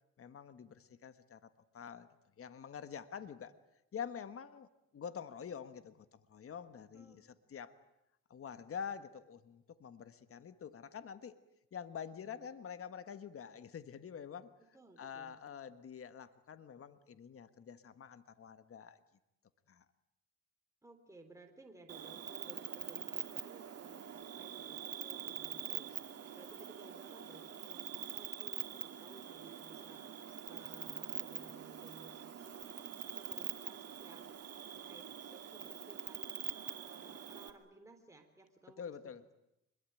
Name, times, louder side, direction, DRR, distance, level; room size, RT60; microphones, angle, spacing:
voice 1, 0.2-1.5 1.7-2.1 2.4-3.5 3.9-7.7 8.3-11.4 11.7-14.5 15.0-19.0 19.7-19.8 38.8-39.2, left 7 dB, 50° left, 12 dB, 1.5 m, -47 dB
voice 2, 6.9-7.2 14.6-15.3 20.8-25.9 26.2-32.6 33.1-34.4 34.7-38.9, right 2 dB, 10° right, 3 dB, 3.8 m, -58 dB
Cricket, 21.9-37.5, right 9 dB, 55° right, 2.4 m, -44 dB
25.0 x 22.0 x 9.1 m, 0.85 s
cardioid pair, 90°, 30 cm